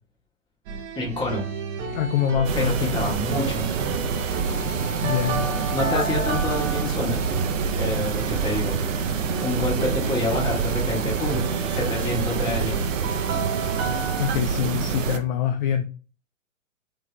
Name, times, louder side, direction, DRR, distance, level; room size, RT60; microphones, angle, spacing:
sound 1, 0.7-14.3, right 4 dB, 35° right, 1.0 m, -31 dB
voice 1, 0.9-1.4 2.5-3.7 5.7-7.2 7.7-11.4 11.7-12.7, left 2 dB, 10° left, -2 dB, 1.6 m, -28 dB
voice 2, 1.9-3.0 5.0-5.5 5.9-6.0 14.2-15.8, left 9 dB, 35° left, 6 dB, 0.5 m, -25 dB
sound 2, 2.4-15.2, right 6 dB, 70° right, 0.8 m, -27 dB
3.8 x 3.4 x 3.3 m, 0.35 s
hypercardioid pair, 115°, 40 cm